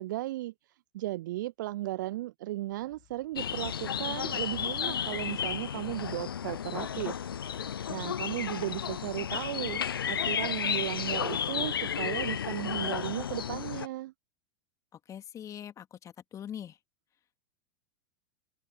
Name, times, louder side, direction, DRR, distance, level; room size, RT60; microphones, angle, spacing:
voice 1, 0.0-7.3 7.9-14.1, right 16 dB, 55° right, 0.4 m, -36 dB
sound 1, 2.7-13.6, left 31 dB, 45° left, 2.7 m, -54 dB
sound 2, 3.4-13.9, left 8 dB, 75° left, 0.6 m, -33 dB
voice 2, 15.1-16.8, left 9 dB, 25° left, 2.6 m, -42 dB
open air
figure-of-eight pair, 90°, 12 cm